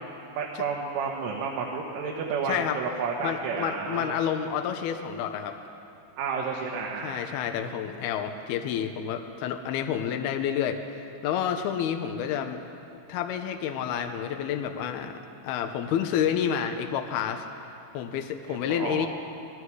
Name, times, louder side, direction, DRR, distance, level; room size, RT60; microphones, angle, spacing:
voice 1, 0.4-4.2 6.2-7.3 18.5-19.1, right 5 dB, 75° right, -2 dB, 3.8 m, -31 dB
voice 2, 2.5-2.8 3.2-5.6 7.0-12.6 13.1-15.2 15.4-17.4 17.9-19.1, left 9 dB, 85° left, 6 dB, 2.2 m, -29 dB
27.5 x 19.5 x 4.8 m, 2.7 s
omnidirectional pair, 6.0 m